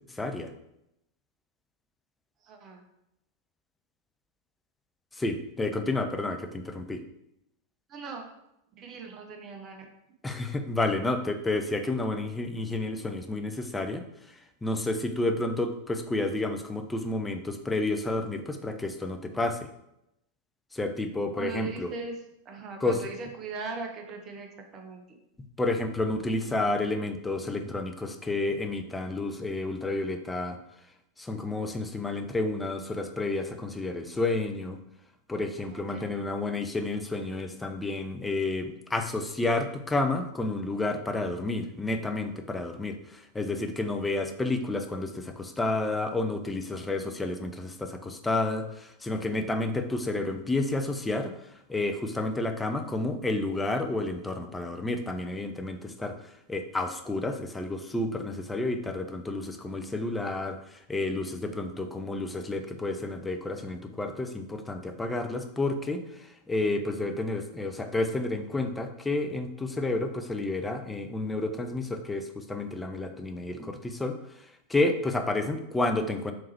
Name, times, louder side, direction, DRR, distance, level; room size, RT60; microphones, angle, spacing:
voice 1, 0.1-0.5 5.2-7.0 10.2-14.0 14.6-19.7 20.7-21.9 22.8-23.0 25.6-30.6 31.2-34.8 35.3-51.3 51.7-56.2 56.5-74.2 74.7-76.3, left 2 dB, 10° left, 6 dB, 0.3 m, -30 dB
voice 2, 2.4-2.8 7.9-8.3 8.8-9.8 21.3-22.2 22.4-24.5 24.7-25.0 35.7-36.1, right 4 dB, 30° right, 3 dB, 0.6 m, -39 dB
3.5 x 3.0 x 2.9 m, 0.82 s
figure-of-eight pair, 90°, 0 cm